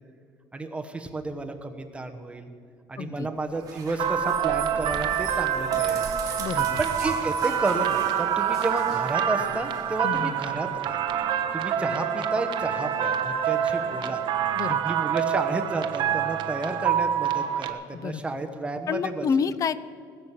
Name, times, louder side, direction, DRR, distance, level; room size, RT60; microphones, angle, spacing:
voice 1, 0.5-2.5 2.9-6.1 6.8-11.0 11.5-14.2 14.8-19.3, right 2 dB, 10° right, 5 dB, 1.2 m, -31 dB
voice 2, 3.0-3.3 6.4-6.8 10.0-10.4 14.5-14.9 17.9-18.2 18.9-19.8, left 6 dB, 40° left, 16 dB, 0.6 m, -29 dB
sound 1, 3.5-10.5, right 5 dB, 40° right, 2.9 m, -38 dB
sound 2, 4.0-17.7, right 9 dB, 60° right, 1.1 m, -26 dB
sound 3, 7.8-17.2, left 1 dB, 20° left, 3.7 m, -47 dB
19.5 x 7.4 x 8.3 m, 2.2 s
cardioid pair, 125°, 9 cm